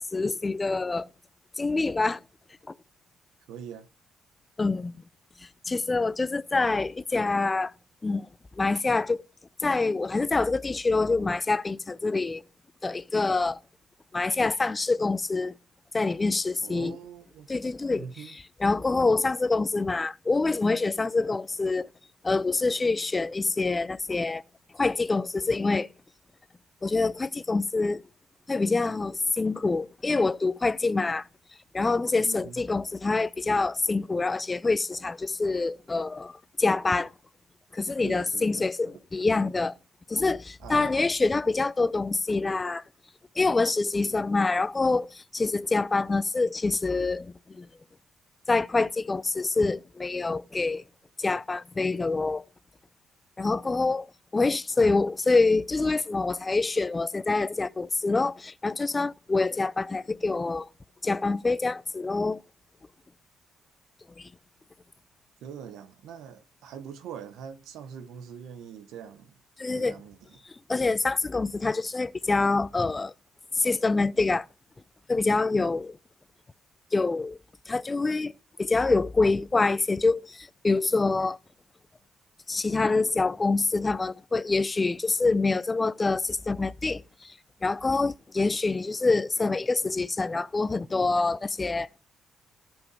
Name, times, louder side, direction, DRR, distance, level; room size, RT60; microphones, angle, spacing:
voice 1, 0.1-1.1 1.6-2.2 4.6-4.9 5.7-7.7 8.0-8.3 8.6-9.2 9.6-12.4 12.8-13.6 14.1-15.5 15.9-16.9 17.5-18.0 18.6-21.9 22.2-24.4 24.8-25.9 26.8-28.0 28.5-31.2 31.7-36.3 36.6-37.1 37.7-39.7 40.1-42.8 43.4-47.7 48.5-50.8 51.2-52.4 53.4-54.1 54.3-60.7 61.0-62.4 64.2-64.3 69.6-69.9 70.7-73.1 73.6-74.5 75.1-76.0 76.9-77.4 77.7-78.3 78.6-81.4 82.5-87.0 87.6-91.9, left 3 dB, 25° left, 0.5 m, -26 dB
voice 2, 3.5-3.9 16.6-17.5 18.0-18.4 32.2-32.6 38.0-38.7 38.9-39.0 40.6-41.0 65.4-69.4 69.7-70.4, right 8 dB, 90° right, 1.1 m, -43 dB
14.0 x 5.3 x 4.8 m
cardioid pair, 90°, 0 cm